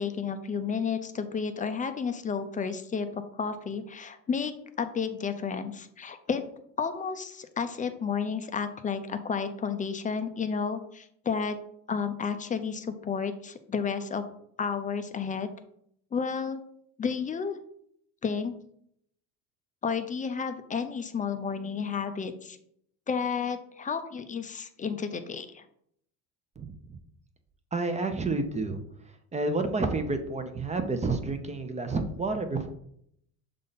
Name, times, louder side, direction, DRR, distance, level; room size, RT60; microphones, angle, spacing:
voice 1, 0.0-6.4 6.8-11.6 11.9-14.2 14.6-15.5 16.1-16.6 17.0-17.6 18.2-18.6 19.8-22.6 23.1-25.6, left 6 dB, 20° left, 9 dB, 0.5 m, -31 dB
voice 2, 26.6-27.0 27.7-28.8 29.3-32.7, right 3 dB, 20° right, 7 dB, 0.7 m, -30 dB
6.5 x 3.8 x 4.0 m, 0.70 s
supercardioid pair, 110°, 39 cm